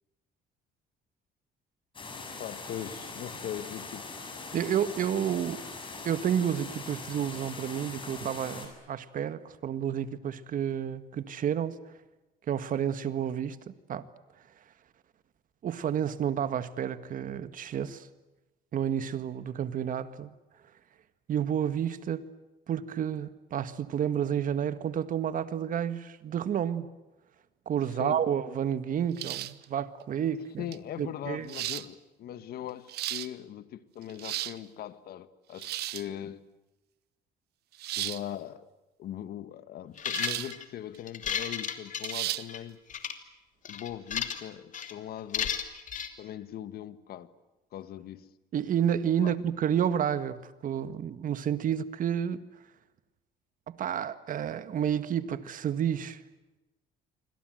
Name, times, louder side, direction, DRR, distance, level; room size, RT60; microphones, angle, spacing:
sound 1, 1.9-8.7, left 3 dB, 30° left, 7.7 m, -42 dB
voice 1, 2.4-4.1 28.0-28.2 30.6-36.4 38.0-38.7 39.0-42.8 43.7-45.6 46.2-47.3 47.7-48.3 49.2-49.3, left 11 dB, 65° left, 1.7 m, -40 dB
voice 2, 4.5-5.6 6.0-11.8 12.5-13.6 13.9-14.1 15.6-18.1 18.7-20.3 21.3-22.3 22.7-26.9 27.7-30.7 31.0-31.5 48.5-52.4 53.7-56.2, right 9 dB, 55° right, 1.8 m, -30 dB
sound 2, 29.2-29.7 30.7-30.8 31.5-31.9 32.7-33.3 34.0-34.6 35.6-36.1 37.8-38.2 40.1-40.5 40.9-41.0 42.0-42.5, right 15 dB, 75° right, 1.1 m, -34 dB
sound 3, 40.0-40.6 41.1-42.6 42.9-43.1 43.7-44.5 44.7-44.9 45.3-46.1, left 8 dB, 50° left, 2.9 m, -33 dB
27.0 x 25.0 x 7.9 m
cardioid pair, 110°, 17 cm